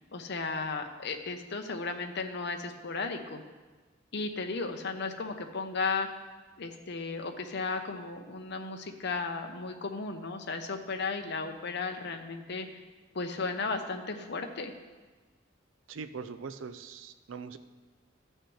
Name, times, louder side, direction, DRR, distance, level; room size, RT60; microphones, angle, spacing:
voice 1, 0.1-3.4 4.1-6.1 6.6-12.7 13.1-14.7, left 4 dB, 60° left, 5 dB, 0.8 m, -35 dB
voice 2, 15.9-17.6, right 5 dB, 80° right, 11 dB, 0.4 m, -41 dB
14.5 x 6.5 x 3.2 m, 1.3 s
head